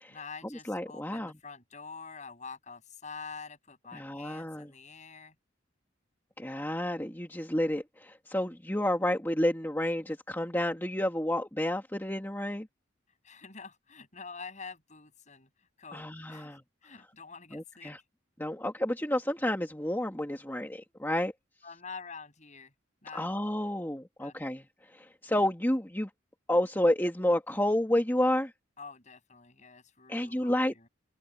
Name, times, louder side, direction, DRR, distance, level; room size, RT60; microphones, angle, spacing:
voice 1, 0.1-5.3 13.2-15.5 15.8-17.9 21.6-22.7 23.0-23.3 24.2-24.4 28.8-30.9, left 5 dB, 40° left, 7.2 m, -46 dB
voice 2, 0.7-1.3 3.9-4.7 6.4-12.7 15.9-16.6 17.5-18.0 18.4-21.3 23.1-24.7 24.9-26.1 26.5-28.5 30.1-30.7, left 1 dB, 10° left, 2.1 m, -30 dB
open air
head